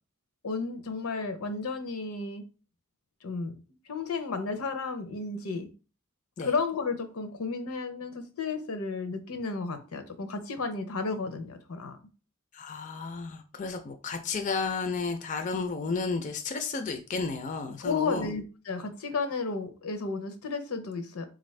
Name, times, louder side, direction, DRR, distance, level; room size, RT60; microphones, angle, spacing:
voice 1, 0.4-2.5 3.2-3.6 3.9-5.7 6.4-12.0 17.8-21.3, left 4 dB, 85° left, 0.7 m, -33 dB
voice 2, 12.5-18.3, left 4 dB, 35° left, 0.4 m, -32 dB
3.8 x 2.5 x 3.1 m
head